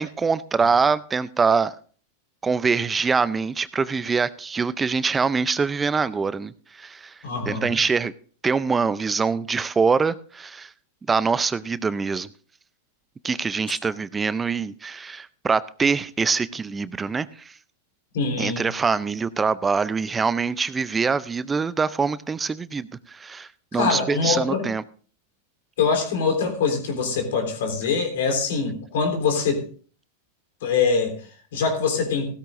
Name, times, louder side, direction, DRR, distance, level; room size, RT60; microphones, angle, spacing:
voice 1, 0.0-1.7 2.4-7.1 7.5-8.1 8.4-10.7 11.1-12.3 13.2-17.5 18.4-24.8, right 5 dB, 15° right, 0.5 m, -24 dB
voice 2, 7.2-7.7 18.1-18.6 23.7-24.6 25.8-29.6 30.6-31.1 31.5-32.3, left 5 dB, 70° left, 3.5 m, -23 dB
16.0 x 13.5 x 2.6 m
hypercardioid pair, 105°, 0 cm